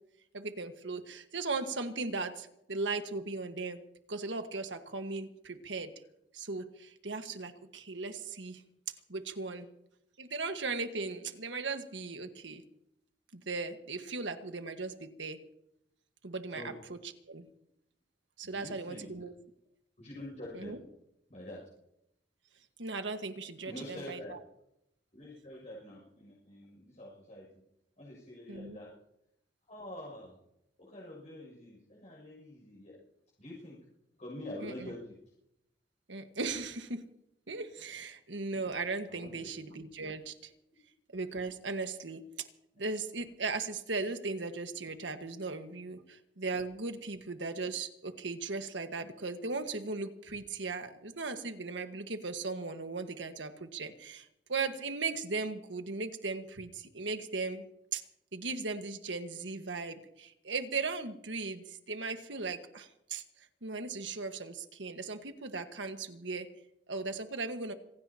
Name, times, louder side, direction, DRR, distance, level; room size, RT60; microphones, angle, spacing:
voice 1, 0.3-3.8 4.1-5.9 6.3-8.6 9.1-9.7 10.2-12.6 13.3-15.4 16.2-17.0 17.3-17.5 18.4-19.3 20.5-20.8 22.8-24.4 28.5-28.8 34.6-34.9 36.1-37.1 37.5-40.5 41.1-42.3 42.8-58.0 58.3-63.2 63.6-66.5 66.9-67.7, right 3 dB, 75° right, 7 dB, 1.6 m, -37 dB
voice 2, 18.4-19.1 20.0-20.7 21.3-21.6 23.6-24.4 25.1-27.5 28.0-28.9 29.7-30.4 30.8-33.0 33.4-33.8 34.2-35.2 37.5-37.6 39.1-39.5, left 1 dB, 40° left, -4 dB, 6.8 m, -46 dB
26.5 x 17.0 x 2.9 m, 0.81 s
head